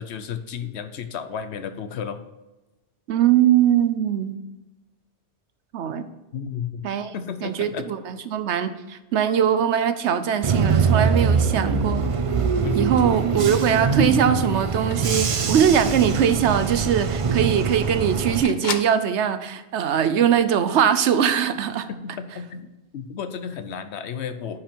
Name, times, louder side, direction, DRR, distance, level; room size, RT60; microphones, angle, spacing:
voice 1, 0.0-2.2 6.3-6.9 7.1-7.9 12.6-12.9 21.9-24.6, left 7 dB, 70° left, 10 dB, 1.0 m, -33 dB
voice 2, 3.1-4.4 5.7-6.1 6.8-7.1 7.4-12.1 12.7-21.9, right 8 dB, 80° right, 11 dB, 1.0 m, -21 dB
Bus / Engine, 10.4-18.4, right 5 dB, 45° right, 0.4 m, -23 dB
sound 1, 13.9-19.1, left 6 dB, 50° left, 0.7 m, -39 dB
9.6 x 5.9 x 4.5 m, 1.1 s
omnidirectional pair, 1.2 m